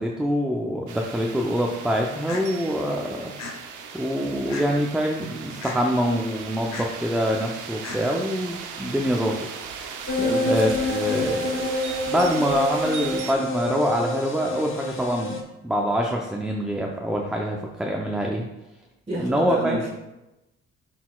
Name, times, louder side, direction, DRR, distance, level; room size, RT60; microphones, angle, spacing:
voice 1, 0.0-3.3 3.9-9.4 10.4-11.6 12.1-18.4 19.2-19.8, equal, 5° right, 0 dB, 0.6 m, -25 dB
sound 1, 0.9-13.3, right 6 dB, 80° right, 0.8 m, -37 dB
sound 2, 2.3-2.4 3.4-3.5 4.5-4.8 5.6-5.8 6.7-6.9 7.8-8.0, left 4 dB, 60° left, 1.1 m, -35 dB
Sinister Drones, 10.1-15.4, left 2 dB, 40° left, 1.1 m, -27 dB
voice 2, 10.2-10.5 19.1-19.9, right 1 dB, 20° right, -6 dB, 1.6 m, -28 dB
10.5 x 4.1 x 2.3 m, 0.97 s
cardioid pair, 90°, 30 cm